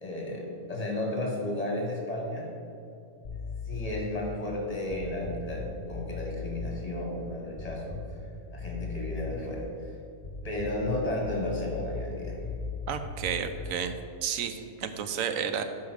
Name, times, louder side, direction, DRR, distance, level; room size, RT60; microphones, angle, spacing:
voice 1, 0.0-2.5 3.7-8.0 8.5-9.9 10.4-12.4, left 1 dB, 30° left, -1 dB, 1.6 m, -33 dB
sound 1, 3.2-4.2 4.9-6.8 7.6-8.3 8.6-9.5 10.2-13.9, left 4 dB, 45° left, 1.2 m, -38 dB
voice 2, 12.9-13.9 14.2-15.6, right 7 dB, 85° right, 8 dB, 1.1 m, -31 dB
8.4 x 5.0 x 6.4 m, 2.7 s
omnidirectional pair, 1.4 m